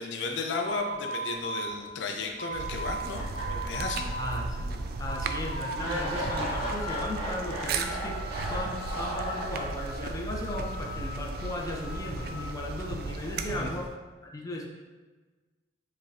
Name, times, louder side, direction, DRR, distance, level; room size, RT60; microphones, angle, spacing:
voice 1, 0.0-4.1 13.5-13.7, left 4 dB, 80° left, 3 dB, 0.5 m, -34 dB
sound 1, 0.6-3.1 3.3-4.4 4.8-5.8 6.0-7.1 7.5-8.5 8.7-10.0 10.5-12.5, right 2 dB, 50° left, 0.9 m, -38 dB
sound 2, 2.5-13.9, right 3 dB, 55° right, 0.3 m, -36 dB
sound 3, 3.1-4.4 4.8-4.9 5.7-10.0, right 1 dB, 30° right, 1.3 m, -36 dB
voice 2, 4.2-13.9 14.2-14.7, left 1 dB, 20° left, 0 dB, 0.4 m, -36 dB
4.9 x 3.2 x 2.4 m, 1.3 s
head